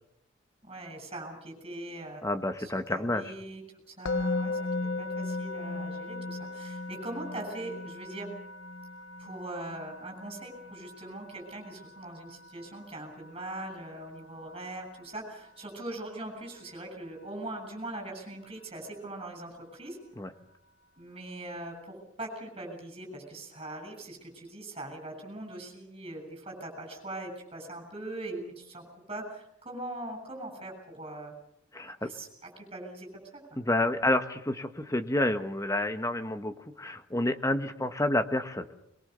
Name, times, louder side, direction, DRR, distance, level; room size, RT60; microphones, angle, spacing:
voice 1, 0.6-8.3 9.2-20.0 21.0-31.3 31.8-33.1 33.3-33.6, right 1 dB, 25° right, 4 dB, 7.6 m, -41 dB
voice 2, 2.2-3.3 20.2-20.3 31.7-32.1 33.6-38.7, left 1 dB, 15° left, 8 dB, 1.3 m, -29 dB
Musical instrument, 4.0-15.2, left 3 dB, 70° left, 0.9 m, -37 dB
22.5 x 22.5 x 6.8 m, 0.76 s
head